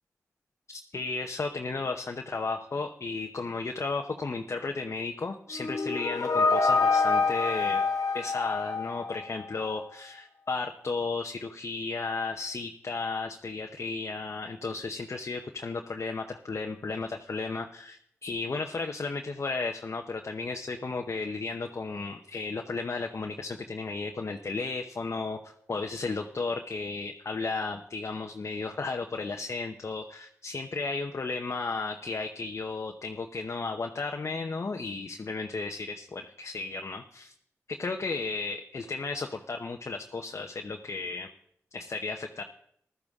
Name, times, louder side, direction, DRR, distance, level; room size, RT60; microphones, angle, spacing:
voice 1, 0.7-7.8 8.1-37.3 37.7-41.3 41.7-42.4, left 3 dB, 55° left, 3 dB, 0.9 m, -34 dB
sound 1, 5.5-9.5, left 4 dB, 80° left, 1.2 m, -26 dB
15.0 x 12.5 x 3.7 m, 0.69 s
cardioid pair, 45°, 6 cm